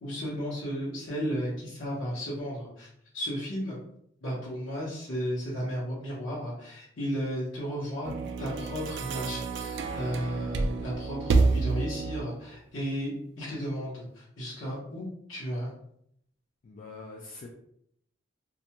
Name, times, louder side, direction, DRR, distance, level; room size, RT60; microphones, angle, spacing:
voice 1, 0.0-2.9 3.1-3.8 4.2-8.1 8.4-15.7, equal, 80° left, -8 dB, 0.9 m, -34 dB
sound 1, 8.0-12.4, right 3 dB, 65° right, 0.3 m, -29 dB
voice 2, 16.6-17.5, left 3 dB, 45° left, 0 dB, 0.3 m, -44 dB
2.4 x 2.1 x 2.8 m, 0.71 s
head